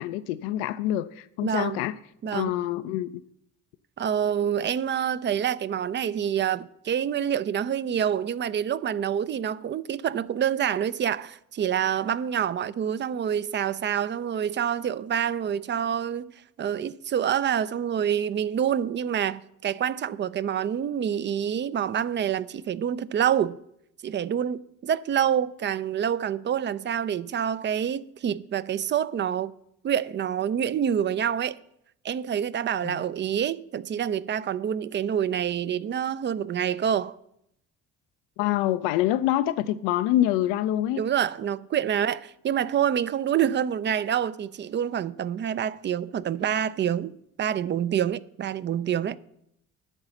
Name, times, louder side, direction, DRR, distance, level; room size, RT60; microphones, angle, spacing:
voice 1, 0.0-2.0 2.3-3.1 32.8-33.0 38.4-41.0, left 13 dB, 60° left, 0.5 m, -26 dB
voice 2, 1.4-1.8 2.2-2.5 4.0-16.3 16.6-23.6 24.0-29.5 29.8-31.6 32.0-37.2 41.0-49.2, right 9 dB, 30° right, 0.4 m, -27 dB
10.5 x 4.8 x 7.7 m
figure-of-eight pair, 40°, 43 cm